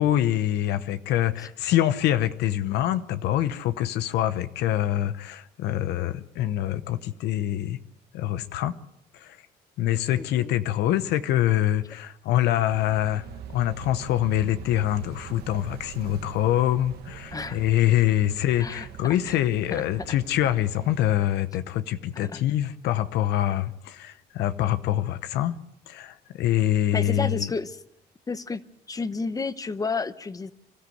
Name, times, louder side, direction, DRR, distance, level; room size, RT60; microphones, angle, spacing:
voice 1, 0.0-7.8 8.1-8.7 9.1-9.4 9.8-13.2 13.5-25.6 25.9-27.5, left 12 dB, 80° left, 12 dB, 0.9 m, -25 dB
voice 2, 10.1-10.6 17.3-17.6 18.6-18.9 19.3-19.4 19.7-20.2 22.1-22.4 26.9-27.8 28.3-28.6 28.9-30.5, left 4 dB, 20° left, 14 dB, 0.9 m, -31 dB
sound 1, 12.7-21.0, right 10 dB, 70° right, 1.3 m, -43 dB
25.5 x 13.5 x 7.9 m, 0.82 s
cardioid pair, 110°, 17 cm